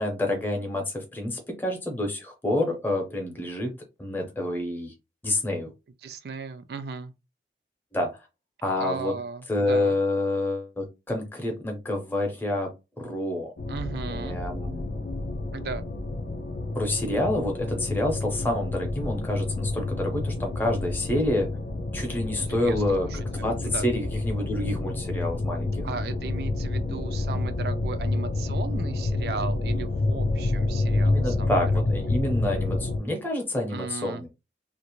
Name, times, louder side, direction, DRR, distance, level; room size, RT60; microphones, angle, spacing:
voice 1, 0.0-3.7 4.0-4.9 5.2-5.7 7.9-8.3 8.6-9.1 9.5-12.7 13.0-13.5 14.1-14.9 16.8-21.5 21.9-25.9 31.0-34.3, left 1 dB, 10° left, 0.6 m, -28 dB
voice 2, 6.0-7.1 8.8-10.0 13.7-14.4 15.5-15.8 22.5-22.8 23.1-23.9 25.8-31.6 32.0-32.1 33.7-34.2, right 4 dB, 60° right, 0.3 m, -36 dB
sound 1, 13.6-33.0, left 2 dB, 50° left, 0.4 m, -28 dB
2.5 x 2.0 x 3.0 m
head